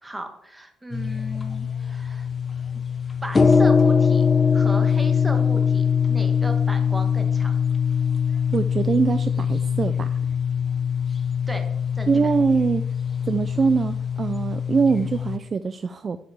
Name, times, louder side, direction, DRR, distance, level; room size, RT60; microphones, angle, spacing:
voice 1, 0.0-2.3 2.7-2.8 3.2-7.6 11.5-11.7 11.9-12.3, right 1 dB, 10° right, 5 dB, 1.4 m, -35 dB
sound 1, 0.9-15.4, left 6 dB, 25° left, 0.7 m, -22 dB
voice 2, 8.5-10.2 12.1-12.8 13.3-16.2, right 5 dB, 35° right, 11 dB, 0.4 m, -23 dB
8.0 x 5.0 x 7.1 m, 0.78 s
cardioid pair, 120°, 0 cm